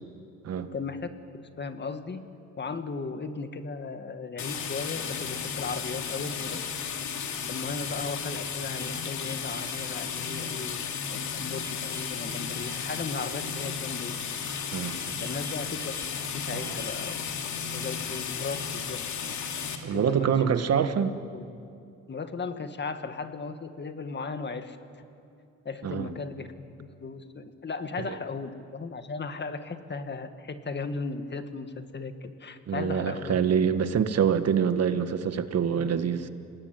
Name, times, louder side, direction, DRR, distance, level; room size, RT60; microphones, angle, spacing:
voice 1, 0.7-1.1 1.6-2.2 2.6-6.6 7.5-10.8 11.1-14.2 14.5-14.6 15.2-15.9 16.2-17.1 17.6-19.0 19.9-20.3 20.8-21.7 22.1-25.0 25.7-33.3 35.8-36.3, left 4 dB, 35° left, 8 dB, 1.9 m, -36 dB
sound 1, 4.4-19.8, left 6 dB, 70° left, 2.7 m, -34 dB
voice 2, 14.7-15.2 16.5-16.8 19.8-21.2 25.8-26.1 32.7-36.3, right 7 dB, 55° right, 10 dB, 1.6 m, -26 dB
29.0 x 19.5 x 9.2 m, 2.6 s
cardioid pair, 90°, 30 cm